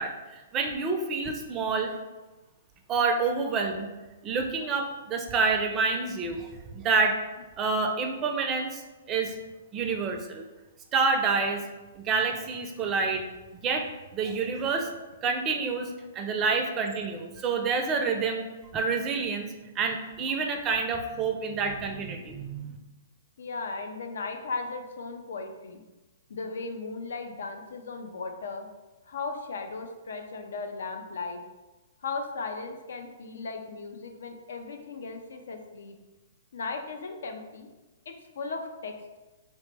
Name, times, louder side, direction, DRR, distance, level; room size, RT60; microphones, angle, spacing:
voice 1, 0.0-1.9 2.9-3.9 4.2-7.1 7.6-9.3 9.7-10.4 10.9-11.6 12.0-13.2 13.5-13.8 14.1-14.9 15.2-18.4 18.7-22.8, right 4 dB, 25° right, 4 dB, 0.4 m, -28 dB
voice 2, 23.4-25.8 26.3-28.7 29.1-31.4 32.0-36.0 36.5-37.7 38.1-39.2, left 4 dB, 75° left, 5 dB, 0.4 m, -37 dB
2.8 x 2.0 x 3.3 m, 1.1 s
hypercardioid pair, 135°, 0 cm